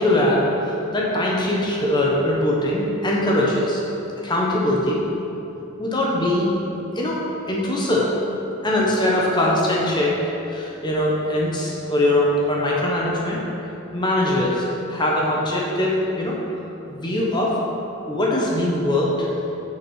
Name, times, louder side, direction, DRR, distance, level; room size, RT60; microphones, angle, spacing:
voice 1, 0.0-3.8 4.2-5.0 5.8-6.5 6.9-7.2 7.5-8.1 8.6-10.2 10.5-13.4 13.9-14.6 14.9-16.3 16.9-17.5 18.1-19.3, left 1 dB, 20° left, -4 dB, 0.8 m, -21 dB
5.9 x 4.5 x 6.1 m, 3.0 s
head